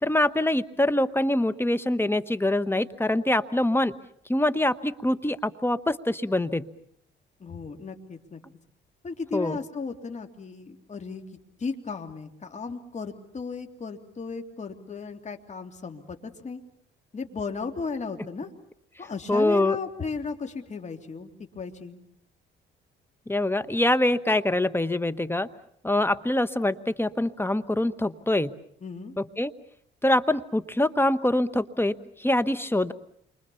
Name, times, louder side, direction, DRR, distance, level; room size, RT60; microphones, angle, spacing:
voice 1, 0.0-3.9 4.3-6.7 9.3-9.6 19.3-19.8 23.3-25.5 25.8-28.5 29.2-29.5 30.0-32.9, left 1 dB, 10° left, 13 dB, 1.2 m, -24 dB
voice 2, 7.4-8.4 9.0-11.2 11.6-16.6 17.1-18.5 19.0-21.3 21.5-22.0 28.8-29.1, left 4 dB, 35° left, 4 dB, 2.9 m, -35 dB
29.0 x 24.0 x 7.0 m, 0.68 s
cardioid pair, 90°, 20 cm